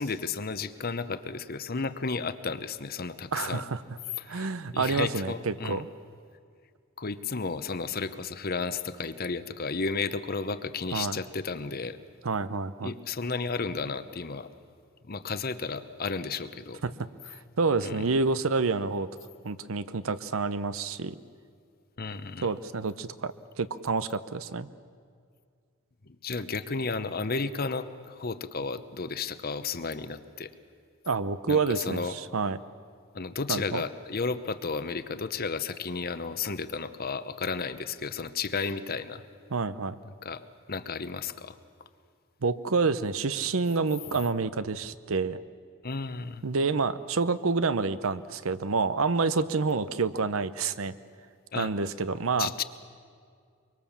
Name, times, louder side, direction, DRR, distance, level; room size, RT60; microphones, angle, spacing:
voice 1, 0.0-3.6 4.2-5.8 7.0-12.0 12.8-14.5 15.0-16.8 17.8-18.1 22.0-22.5 26.1-30.5 31.5-32.1 33.1-39.2 40.0-41.6 45.8-46.4 51.5-51.7 52.4-52.6, left 4 dB, 45° left, 12 dB, 0.9 m, -33 dB
voice 2, 3.3-3.8 4.3-5.9 10.9-11.2 12.2-12.9 16.8-16.9 17.2-19.1 19.4-21.1 22.4-23.3 23.6-24.7 31.1-32.6 33.5-33.8 39.5-40.0 42.4-45.4 46.4-50.9 51.6-52.5, right 4 dB, 75° right, 14 dB, 0.8 m, -28 dB
24.0 x 23.5 x 7.3 m, 2.2 s
head